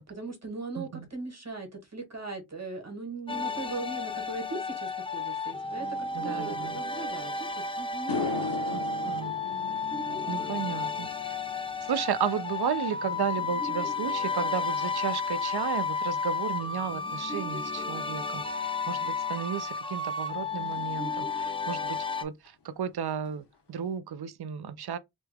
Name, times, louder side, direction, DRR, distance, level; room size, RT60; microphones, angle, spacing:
voice 1, 0.1-5.9 6.1-9.7 10.1-10.6, right 3 dB, 40° right, 1.3 m, -40 dB
sound 1, 3.3-22.2, left 4 dB, 15° left, 0.4 m, -32 dB
voice 2, 6.1-6.7 8.7-8.8 9.0-9.4 10.3-11.1 11.9-18.4 18.9-22.3 22.6-25.0, right 8 dB, 70° right, 0.5 m, -33 dB
sound 2, 7.4-7.5 7.9-16.4 16.7-17.1 20.7-20.8 22.5-22.6 22.8-23.0 23.2-23.8, left 6 dB, 80° left, 0.9 m, -40 dB
3.1 x 2.3 x 3.3 m
wide cardioid pair, 85°, 41 cm